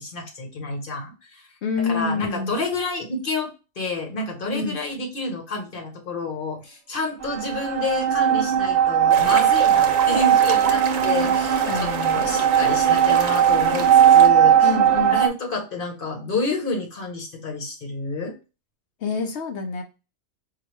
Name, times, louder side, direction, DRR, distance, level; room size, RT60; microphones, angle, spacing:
voice 1, 0.0-1.5 1.8-14.7 15.1-18.3, left 3 dB, 45° left, 2 dB, 1.1 m, -29 dB
voice 2, 1.6-2.5 4.5-4.8 11.2-12.4 14.6-15.2 19.0-19.8, left 4 dB, 60° left, 5 dB, 0.9 m, -28 dB
sound 1, 7.2-15.3, right 9 dB, 60° right, 0.6 m, -18 dB
sound 2, 9.1-14.3, right 6 dB, 80° right, 1.1 m, -30 dB
4.8 x 2.3 x 3.1 m, 0.30 s
omnidirectional pair, 1.4 m